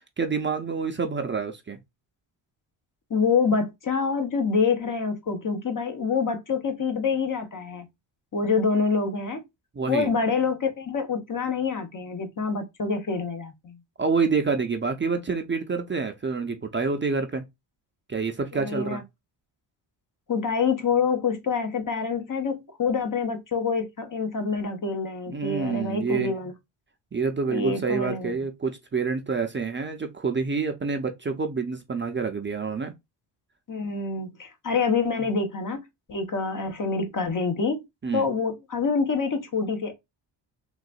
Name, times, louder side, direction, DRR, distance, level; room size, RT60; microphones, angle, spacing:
voice 1, 0.2-1.8 9.7-10.1 14.0-17.4 18.1-19.0 25.3-26.3 27.1-32.9 38.0-38.3, right 5 dB, 25° right, 0.6 m, -27 dB
voice 2, 3.1-7.9 8.3-9.4 9.9-13.8 18.5-19.0 20.3-26.5 27.5-28.3 33.7-37.8 38.1-39.9, left 5 dB, 40° left, 1.1 m, -26 dB
3.9 x 2.6 x 2.3 m
cardioid pair, 70°, 47 cm